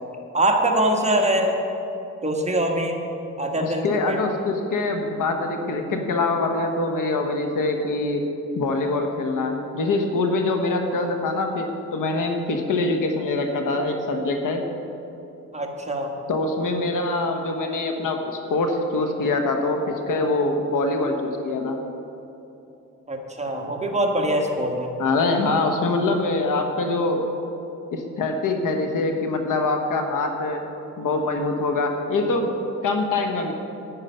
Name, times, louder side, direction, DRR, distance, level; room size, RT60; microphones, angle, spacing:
voice 1, 0.3-1.6 2.2-3.0 3.4-4.2 10.9-11.0 15.5-16.1 23.1-24.9, right 1 dB, 20° right, 1 dB, 1.5 m, -23 dB
voice 2, 3.5-8.2 8.5-11.7 11.9-14.6 16.3-19.8 20.1-21.8 25.0-27.2 27.9-30.6 31.0-32.5 32.8-33.5, left 2 dB, 85° left, 4 dB, 1.2 m, -24 dB
9.8 x 9.7 x 5.5 m, 2.9 s
cardioid pair, 90°, 31 cm